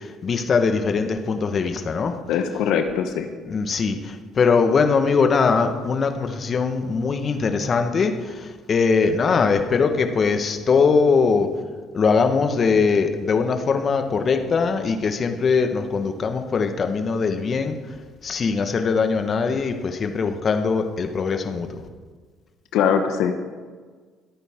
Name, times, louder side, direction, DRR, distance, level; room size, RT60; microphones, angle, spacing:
voice 1, 0.0-2.1 3.4-11.5 11.9-17.8 18.2-21.8, left 5 dB, 45° left, 6 dB, 1.5 m, -21 dB
voice 2, 2.3-3.3 22.7-23.3, left 7 dB, 70° left, 6 dB, 1.1 m, -21 dB
25.0 x 8.9 x 3.8 m, 1.5 s
hypercardioid pair, 60°, 0 cm